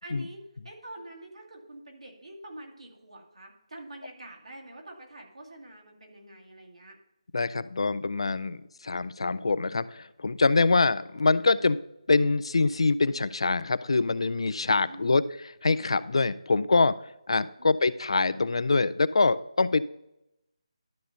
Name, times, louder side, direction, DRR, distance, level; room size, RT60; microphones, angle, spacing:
voice 1, 0.0-7.0 14.8-15.2 17.6-17.8, right 1 dB, 70° right, -1 dB, 2.2 m, -46 dB
voice 2, 7.3-11.8 12.1-15.2 15.6-16.9 17.3-19.8, left 3 dB, 55° left, 15 dB, 0.3 m, -24 dB
12.0 x 6.6 x 2.7 m, 0.85 s
figure-of-eight pair, 155°, 3 cm